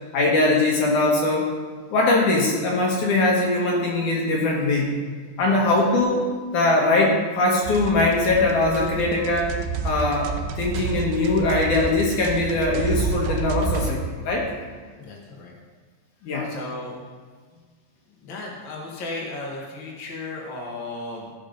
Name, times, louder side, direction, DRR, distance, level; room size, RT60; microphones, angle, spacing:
voice 1, 0.1-1.5 1.9-4.9 5.4-6.2 6.5-9.5 9.8-14.5 16.2-16.5, left 2 dB, 65° left, -2 dB, 2.0 m, -21 dB
sound 1, 7.6-13.9, right 5 dB, 85° right, 2.9 m, -29 dB
voice 2, 14.9-15.5 16.4-17.0 18.2-21.3, left 2 dB, 80° left, -2 dB, 1.0 m, -35 dB
14.5 x 5.5 x 5.3 m, 1.5 s
omnidirectional pair, 5.2 m